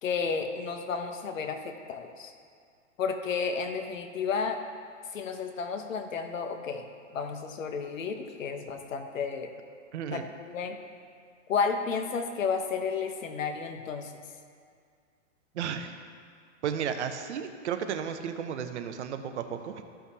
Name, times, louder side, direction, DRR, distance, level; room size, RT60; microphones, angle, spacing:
voice 1, 0.0-2.3 3.0-4.6 5.1-6.8 7.1-9.5 10.1-10.8 11.5-14.1, left 5 dB, 85° left, 6 dB, 1.1 m, -32 dB
voice 2, 9.9-10.3 15.5-16.1 16.6-19.8, right 8 dB, 60° right, 7 dB, 0.8 m, -33 dB
14.0 x 5.7 x 2.8 m, 2.2 s
hypercardioid pair, 150°, 38 cm